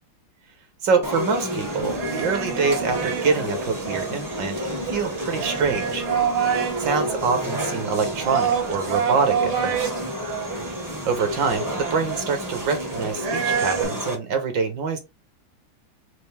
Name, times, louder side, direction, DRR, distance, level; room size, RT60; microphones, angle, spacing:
voice 1, 0.8-6.0 6.8-9.9 11.0-15.0, right 5 dB, 65° right, 1.3 m, -25 dB
sound 1, 1.0-14.2, equal, 30° right, 0.3 m, -30 dB
sound 2, 1.8-13.8, right 7 dB, 85° right, 1.8 m, -29 dB
4.4 x 2.5 x 3.2 m
omnidirectional pair, 2.3 m